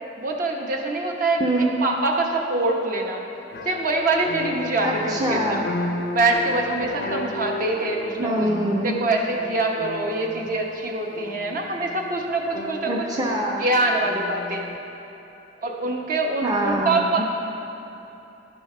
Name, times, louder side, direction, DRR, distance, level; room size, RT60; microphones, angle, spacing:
voice 1, 0.2-1.4 1.8-3.2 3.6-5.6 6.1-8.5 8.8-13.1 13.6-14.7 15.6-17.2, right 2 dB, 50° right, 1 dB, 1.0 m, -24 dB
voice 2, 1.4-1.7 4.8-5.7 8.2-9.0 12.9-13.7 16.4-17.2, right 1 dB, 20° right, -3 dB, 0.6 m, -24 dB
sound 1, 3.5-14.8, left 2 dB, 55° left, 0.5 m, -35 dB
11.0 x 5.5 x 5.4 m, 3.0 s
head